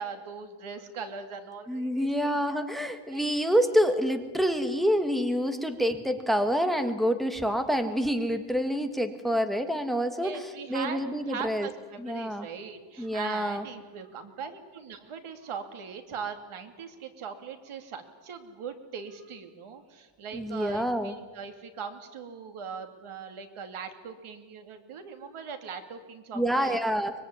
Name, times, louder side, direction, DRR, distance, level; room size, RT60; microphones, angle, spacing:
voice 1, 0.0-2.4 3.1-3.4 10.2-26.8, right 6 dB, 90° right, 7 dB, 2.7 m, -40 dB
voice 2, 1.7-11.7 12.0-12.5 13.0-13.6 20.3-21.1 26.3-27.1, equal, ahead, 8 dB, 1.5 m, -27 dB
24.0 x 22.0 x 9.8 m, 1.3 s
wide cardioid pair, 175°, 48 cm